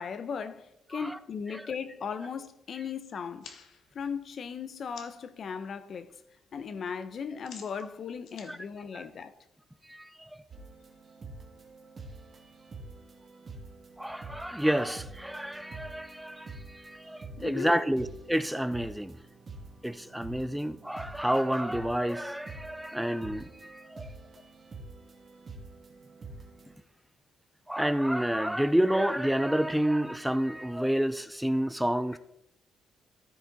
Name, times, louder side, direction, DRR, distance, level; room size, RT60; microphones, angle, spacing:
voice 1, 0.0-3.6 3.9-6.1 6.5-9.3 17.4-17.8, left 6 dB, 55° left, 0.7 m, -37 dB
sound 1, 3.3-5.3 5.7-6.2 6.4-9.7, left 6 dB, 75° left, 1.1 m, -52 dB
voice 2, 9.8-10.4 14.0-19.2 19.8-24.1 27.7-32.2, equal, 5° right, 0.4 m, -29 dB
sound 2, 10.5-26.7, right 3 dB, 40° right, 2.0 m, -47 dB
14.0 x 5.0 x 4.0 m
cardioid pair, 90°, 0 cm